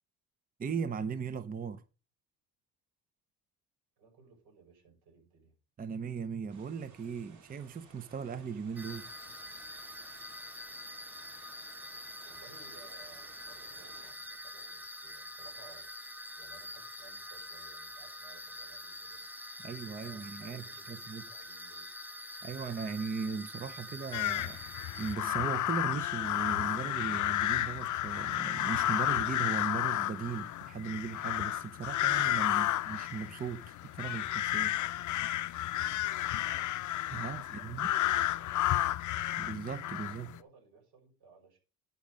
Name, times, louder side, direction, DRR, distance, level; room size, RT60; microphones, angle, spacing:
voice 1, 0.6-1.8 5.8-9.1 19.6-21.3 22.4-34.8 37.1-37.9 39.4-40.3, right 6 dB, 25° right, 0.6 m, -38 dB
voice 2, 4.0-5.5 12.2-19.2 20.0-21.9 32.4-32.7 37.2-39.3 39.9-41.6, right 5 dB, 75° right, 5.7 m, -60 dB
sound 1, 6.5-14.1, right 5 dB, 50° right, 2.2 m, -59 dB
sound 2, 8.8-25.2, left 1 dB, 5° right, 1.1 m, -45 dB
sound 3, 24.1-40.4, left 14 dB, 50° left, 0.7 m, -32 dB
10.5 x 5.1 x 5.2 m
cardioid pair, 95°, 38 cm